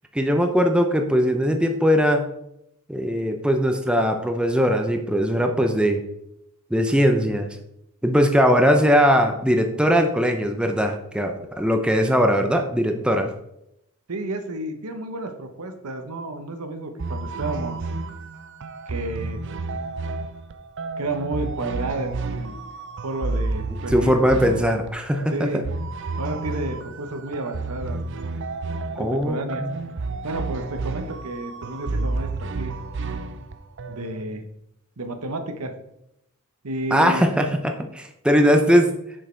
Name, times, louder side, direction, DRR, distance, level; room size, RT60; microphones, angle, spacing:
voice 1, 0.1-2.2 2.9-6.0 6.7-7.5 8.0-13.3 23.9-25.6 29.0-29.7 36.9-38.9, equal, 5° right, 4 dB, 0.6 m, -20 dB
voice 2, 14.1-17.8 18.9-19.4 21.0-22.6 23.0-24.2 25.3-25.6 26.2-28.4 29.0-29.6 30.2-32.7 33.9-34.4 35.0-35.7 36.6-37.3, right 2 dB, 85° right, 7 dB, 1.1 m, -31 dB
sound 1, 17.0-34.3, right 3 dB, 55° right, 0.6 m, -31 dB
6.4 x 6.4 x 4.5 m, 0.80 s
head